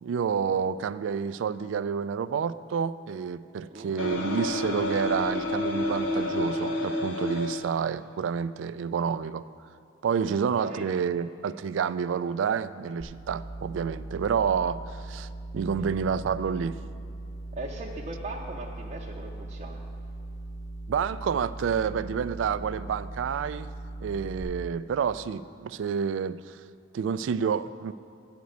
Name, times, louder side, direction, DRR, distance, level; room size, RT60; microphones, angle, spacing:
voice 1, 0.0-9.4 10.0-15.3 15.5-16.8 20.9-23.7 24.0-26.6 26.9-27.9, right 7 dB, 75° right, 15 dB, 0.3 m, -29 dB
sound 1, 4.0-7.7, left 1 dB, 80° left, 0.8 m, -29 dB
voice 2, 10.2-10.9 17.5-19.8, right 2 dB, 35° right, -4 dB, 0.6 m, -39 dB
sound 2, 13.0-24.4, right 2 dB, 30° left, 1.9 m, -39 dB
9.4 x 5.2 x 7.9 m, 2.6 s
head